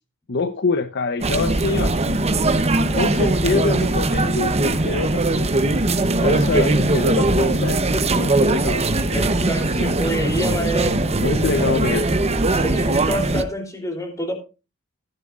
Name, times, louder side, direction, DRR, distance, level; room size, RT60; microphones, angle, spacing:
voice 1, 0.3-2.0 2.9-5.5 6.2-9.5 11.1-12.1, left 3 dB, 50° left, 9 dB, 0.8 m, -25 dB
sound 1, 1.2-13.4, right 2 dB, 30° right, 0.9 m, -20 dB
voice 2, 6.2-6.7 9.1-11.2 12.5-14.3, equal, 15° left, 4 dB, 3.2 m, -27 dB
14.5 x 11.0 x 2.5 m, 0.29 s
head